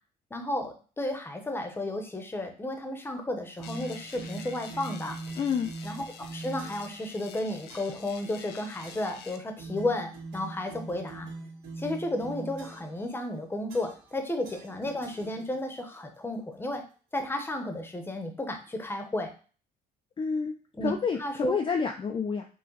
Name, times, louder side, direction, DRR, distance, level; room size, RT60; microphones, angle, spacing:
voice 1, 0.3-5.2 5.8-6.0 6.3-11.3 11.8-16.8 17.1-19.3 20.7-20.9 21.2-21.6, left 1 dB, 15° left, 5 dB, 0.9 m, -33 dB
sound 1, 3.6-9.4, left 6 dB, 75° left, 0.7 m, -48 dB
sound 2, 3.6-7.0 7.7-8.1 8.8-9.2 9.6-13.0 13.7-14.1 14.4-15.8, right 3 dB, 75° right, 2.1 m, -42 dB
voice 2, 5.4-5.7 20.2-20.5 20.8-22.5, left 6 dB, 30° left, 4 dB, 0.5 m, -29 dB
5.8 x 2.3 x 3.9 m, 0.38 s
cardioid pair, 110°, 17 cm